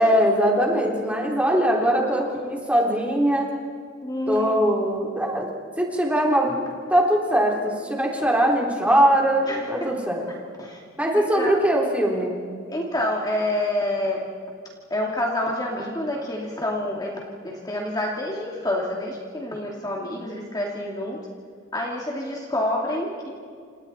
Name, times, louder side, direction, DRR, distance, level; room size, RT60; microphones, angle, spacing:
voice 1, 0.0-3.5 4.3-5.5 5.8-10.3 11.0-12.4, equal, 5° right, -1 dB, 3.5 m, -21 dB
voice 2, 4.0-4.5 9.5-9.9 10.6-10.8 11.4-11.6 12.7-14.2 14.9-21.2 21.7-23.3, left 1 dB, 20° left, -1 dB, 2.5 m, -28 dB
29.5 x 28.0 x 4.3 m, 2.1 s
head